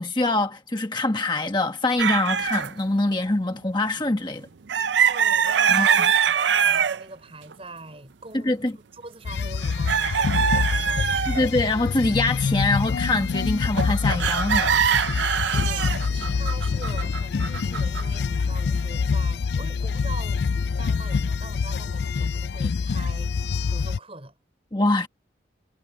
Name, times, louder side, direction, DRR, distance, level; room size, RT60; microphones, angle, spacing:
voice 1, 0.0-4.5 5.7-6.1 8.3-8.7 11.3-15.2 24.7-25.1, left 2 dB, 25° left, 1.2 m, -24 dB
sound 1, 2.0-2.7 4.7-7.0 7.5-7.6 9.6-11.5 13.6-18.2, right 7 dB, 75° right, 0.6 m, -23 dB
voice 2, 5.1-8.6 8.9-11.4 15.5-23.3 23.7-24.4, right 2 dB, 30° right, 6.1 m, -43 dB
sound 2, 9.2-24.0, left 5 dB, 65° left, 0.4 m, -26 dB
head